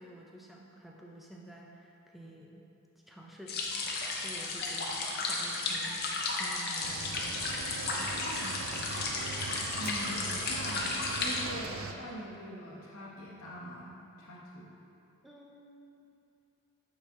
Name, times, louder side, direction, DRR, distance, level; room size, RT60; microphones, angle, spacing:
voice 1, 0.0-2.6 3.1-9.2 15.2-16.1, right 1 dB, ahead, -2 dB, 0.5 m, -51 dB
sound 1, 3.5-11.4, left 3 dB, 45° left, 0.7 m, -34 dB
Cricket / Waves surf, 6.8-11.9, right 5 dB, 70° right, 0.4 m, -41 dB
voice 2, 9.8-10.2 10.5-13.9 14.2-14.7, equal, 70° left, -5 dB, 1.3 m, -43 dB
8.6 x 4.2 x 3.7 m, 2.7 s
head